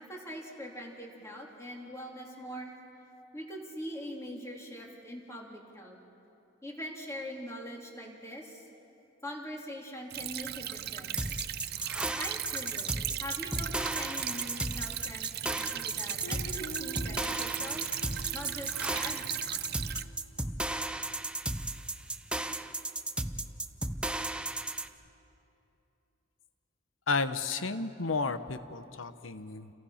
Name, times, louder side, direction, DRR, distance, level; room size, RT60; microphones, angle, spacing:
voice 1, 0.0-2.7 3.3-6.0 6.6-8.7 9.2-11.4 12.1-12.9 13.2-17.9 18.3-19.4, equal, 15° left, -1 dB, 3.4 m, -42 dB
Stream / Trickle dribble, 10.1-20.0, right 12 dB, 55° right, 0.6 m, -37 dB
sound 1, 11.2-24.9, right 2 dB, 5° right, 0.7 m, -35 dB
Guitar, 16.2-20.9, right 1 dB, 65° left, 0.9 m, -48 dB
voice 2, 27.1-29.7, left 4 dB, 85° left, 11 dB, 1.0 m, -32 dB
29.5 x 29.5 x 5.8 m, 2.8 s
head